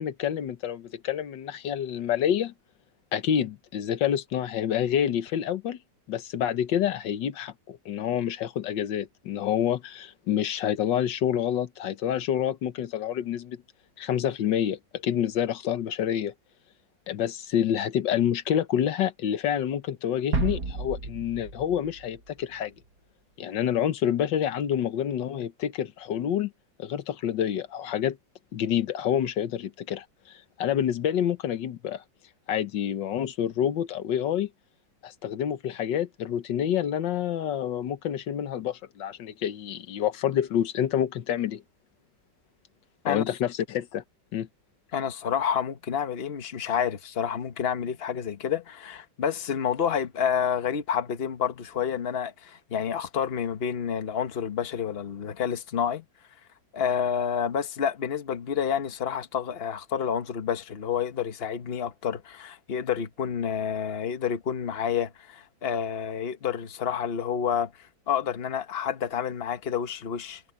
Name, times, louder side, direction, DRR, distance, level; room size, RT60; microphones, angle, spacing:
voice 1, 0.0-2.5 3.1-5.8 6.1-13.6 14.0-16.3 17.1-22.7 23.4-26.5 26.8-28.2 28.5-32.0 32.5-34.5 35.0-41.6 43.1-44.0 44.3-44.5, left 10 dB, 75° left, 1.7 m, -28 dB
sound 1, 20.3-22.8, right 3 dB, 60° right, 2.6 m, -32 dB
voice 2, 44.9-56.0 56.7-70.4, left 8 dB, 35° left, 1.2 m, -29 dB
omnidirectional pair, 2.0 m